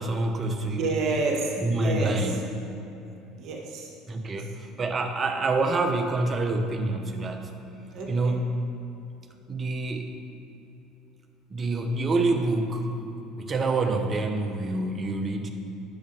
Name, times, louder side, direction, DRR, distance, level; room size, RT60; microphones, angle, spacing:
voice 1, 0.0-0.9 1.6-2.4 4.1-7.5 8.1-8.4 9.5-10.1 11.5-12.9 13.4-15.5, right 2 dB, 35° right, 5 dB, 0.9 m, -27 dB
voice 2, 0.6-2.4 3.4-3.9 7.9-8.4, right 3 dB, 55° right, -1 dB, 1.7 m, -29 dB
10.5 x 6.7 x 3.5 m, 2.9 s
hypercardioid pair, 80°, 0 cm